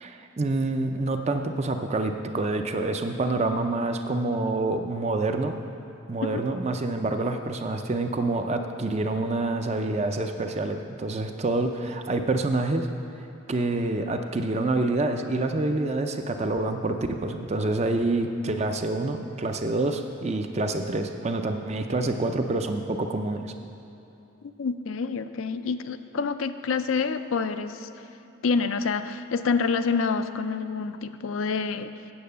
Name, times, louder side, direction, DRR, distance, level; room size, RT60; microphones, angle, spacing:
voice 1, 0.0-5.5 6.1-12.9 13.5-17.0 17.2-23.5, right 2 dB, 30° right, 6 dB, 0.5 m, -27 dB
voice 2, 24.6-27.9 28.4-31.9, left 5 dB, 75° left, 10 dB, 0.4 m, -27 dB
8.7 x 7.5 x 6.8 m, 2.9 s
head